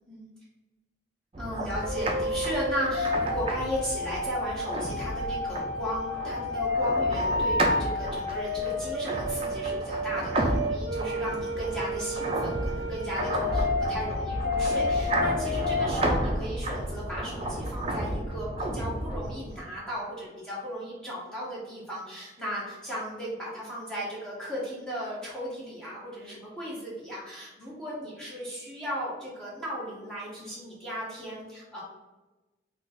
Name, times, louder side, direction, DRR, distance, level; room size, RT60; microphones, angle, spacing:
sound 1, 1.3-19.6, right 1 dB, 30° right, 0.4 m, -32 dB
voice 1, 1.4-31.8, equal, 5° left, -7 dB, 0.9 m, -36 dB
sound 2, 1.8-16.2, left 2 dB, 85° right, 0.5 m, -30 dB
3.2 x 2.4 x 3.9 m, 1.1 s
head